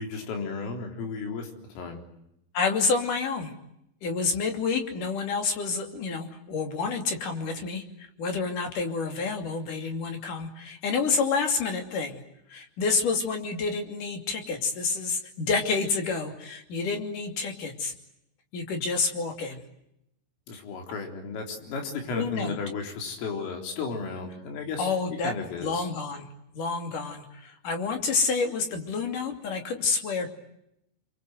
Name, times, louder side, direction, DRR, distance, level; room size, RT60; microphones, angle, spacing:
voice 1, 0.0-2.0 20.5-25.9, left 4 dB, 85° left, 4 dB, 6.5 m, -34 dB
voice 2, 2.5-3.5 4.0-12.2 12.5-17.9 18.5-19.6 22.1-22.6 24.8-25.3 25.6-26.3 26.5-30.3, left 4 dB, 45° left, 5 dB, 3.7 m, -29 dB
29.5 x 23.5 x 7.9 m, 0.82 s
omnidirectional pair, 5.7 m